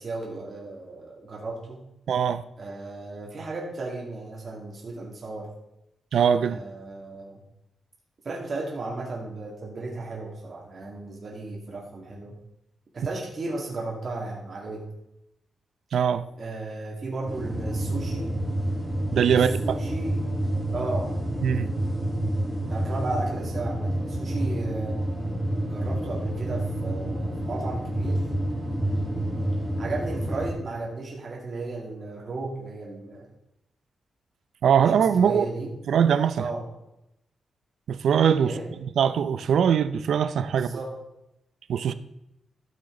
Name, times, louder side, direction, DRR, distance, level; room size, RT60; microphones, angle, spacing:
voice 1, 0.0-1.8 2.6-5.5 6.4-7.4 8.2-12.3 12.9-14.8 16.4-18.3 19.4-20.2 20.7-21.1 22.7-25.0 25.7-28.2 28.8-33.3 35.0-35.7 36.4-36.7 38.4-38.7 40.5-41.0, right 2 dB, 40° right, 2.3 m, -35 dB
voice 2, 2.1-2.4 6.1-6.6 15.9-16.3 19.1-19.8 21.4-21.7 34.6-35.4 35.9-36.5 37.9-38.5 38.8-40.7 41.7-41.9, right 8 dB, 80° right, 0.5 m, -22 dB
sound 1, 17.3-30.5, right 1 dB, 5° left, 2.7 m, -28 dB
12.5 x 7.3 x 3.9 m
wide cardioid pair, 145°, 0 cm